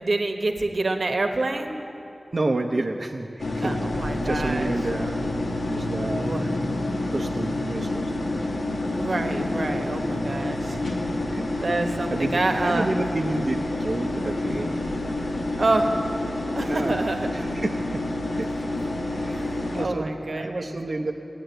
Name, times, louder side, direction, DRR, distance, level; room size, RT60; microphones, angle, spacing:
voice 1, 0.0-1.7 3.6-4.7 6.2-6.5 9.0-10.8 11.6-12.9 15.6-15.9 16.5-17.3 19.3-19.5 19.7-20.7, right 2 dB, 75° right, 5 dB, 1.1 m, -27 dB
voice 2, 2.3-6.3 7.1-8.1 11.3-11.5 11.8-14.7 16.6-16.9 17.3-18.0 18.3-18.5 19.1-21.1, right 2 dB, 60° right, 2 dB, 0.7 m, -30 dB
sound 1, 3.4-19.9, left 2 dB, 90° left, 1.2 m, -28 dB
17.0 x 9.2 x 7.8 m, 2.9 s
wide cardioid pair, 80°, 0 cm